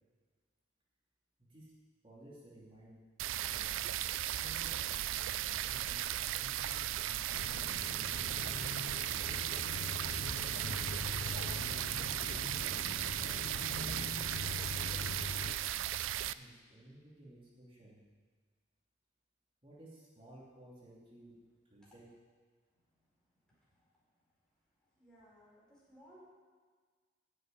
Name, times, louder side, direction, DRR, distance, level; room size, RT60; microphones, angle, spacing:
voice 1, 1.4-1.7 2.0-3.1 3.5-3.9 4.4-6.1 6.4-9.8 10.2-11.0 11.2-11.9 12.3-13.1 16.3-18.0 19.6-22.1, right 1 dB, 30° right, -6 dB, 2.8 m, -57 dB
sound 1, 3.2-16.3, right 12 dB, 80° right, 0.4 m, -36 dB
sound 2, 7.3-15.5, left 3 dB, 45° left, 0.5 m, -43 dB
voice 2, 25.0-26.2, equal, 5° left, -7 dB, 4.4 m, -60 dB
10.5 x 6.7 x 9.0 m, 1.5 s
head